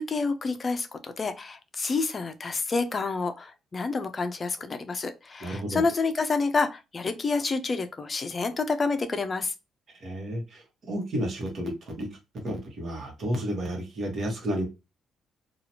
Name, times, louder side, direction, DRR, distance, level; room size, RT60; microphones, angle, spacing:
voice 1, 0.0-9.5, left 4 dB, 35° left, 0.4 m, -28 dB
voice 2, 5.4-5.8 9.9-12.1 12.3-14.7, equal, 55° right, 1.1 m, -32 dB
2.8 x 2.3 x 2.7 m
cardioid pair, 90°, 0 cm